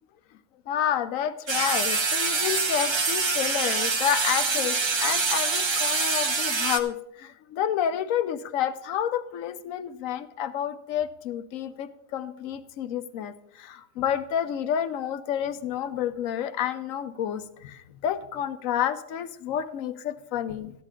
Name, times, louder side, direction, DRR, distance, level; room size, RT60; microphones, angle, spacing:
voice 1, 0.7-20.7, left 9 dB, 75° left, 13 dB, 1.0 m, -29 dB
sound 1, 1.5-6.8, right 4 dB, 30° right, 0.5 m, -25 dB
13.5 x 9.8 x 3.7 m, 0.78 s
omnidirectional pair, 1.5 m